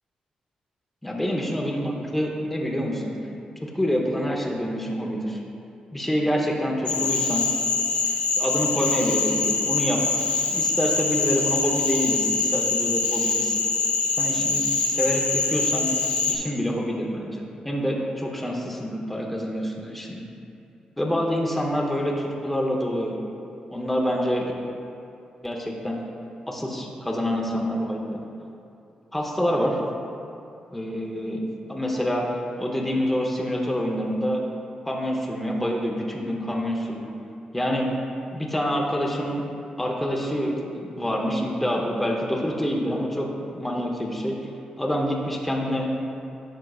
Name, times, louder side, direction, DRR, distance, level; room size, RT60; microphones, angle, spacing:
voice 1, 1.0-3.1 3.6-5.4 5.9-7.5 8.3-10.0 10.5-13.6 14.2-14.6 15.0-15.9 16.3-20.3 21.0-23.2 23.7-24.5 25.4-26.0 26.5-28.2 29.1-29.8 30.7-31.4 31.7-32.3 32.6-34.4 34.8-37.1 37.5-37.9 38.3-39.4 39.8-44.4 44.8-45.9, equal, 5° left, -2 dB, 0.8 m, -26 dB
Cricket / Frog, 6.9-16.4, left 4 dB, 70° left, 1.0 m, -24 dB
11.0 x 6.4 x 2.4 m, 2.7 s
cardioid pair, 100°, 2 cm